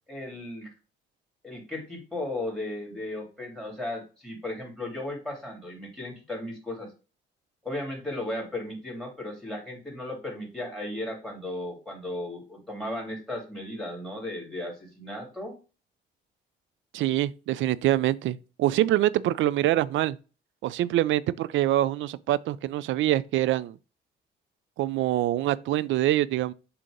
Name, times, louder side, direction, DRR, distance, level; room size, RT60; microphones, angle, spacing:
voice 1, 0.1-0.7 1.4-6.9 7.6-15.5, left 1 dB, ahead, 3.0 m, -35 dB
voice 2, 16.9-20.2 20.6-23.7 24.8-26.5, right 14 dB, 75° right, 0.4 m, -25 dB
7.6 x 2.9 x 5.1 m
cardioid pair, 90°, 20 cm